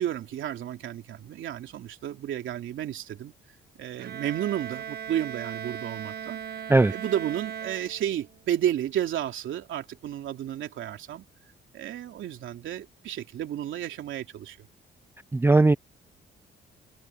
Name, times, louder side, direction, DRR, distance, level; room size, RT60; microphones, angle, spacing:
voice 1, 0.0-3.3 3.8-6.6 6.9-11.2 11.7-14.7, right 11 dB, 75° right, 3.2 m, -32 dB
Bowed string instrument, 4.0-8.4, right 8 dB, 55° right, 1.2 m, -38 dB
voice 2, 15.3-15.8, right 2 dB, 10° right, 0.5 m, -18 dB
cardioid pair, 90°, 20 cm